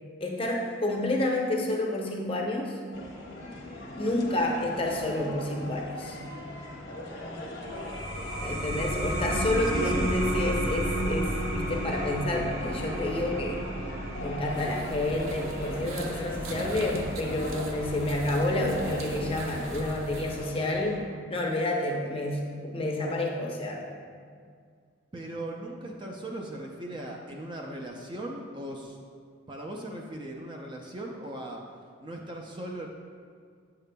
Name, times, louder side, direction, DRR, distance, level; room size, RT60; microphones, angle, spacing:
voice 1, 0.2-2.8 4.0-6.2 8.4-13.6 14.2-21.0 21.3-23.9, left 1 dB, 25° left, 0 dB, 0.6 m, -29 dB
sound 1, 2.9-19.8 20.3-21.0, left 1 dB, 70° left, 1.0 m, -40 dB
sound 2, 7.6-18.8, right 1 dB, 50° right, 1.6 m, -33 dB
voice 2, 9.6-10.2 25.1-29.0 29.5-31.6 32.0-32.9, right 1 dB, 25° right, 0 dB, 0.4 m, -38 dB
sound 3, 14.5-20.5, right 2 dB, 85° right, 0.5 m, -40 dB
8.1 x 6.7 x 2.2 m, 2.1 s
head